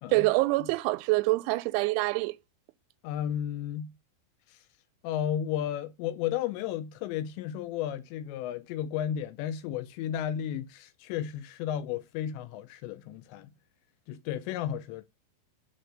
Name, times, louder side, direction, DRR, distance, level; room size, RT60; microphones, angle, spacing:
voice 1, 0.1-2.3, right 22 dB, 90° right, 2.9 m, -25 dB
voice 2, 3.0-3.9 4.5-4.6 5.0-13.5 14.1-15.0, left 10 dB, 85° left, 2.8 m, -33 dB
9.0 x 3.6 x 6.5 m
omnidirectional pair, 5.2 m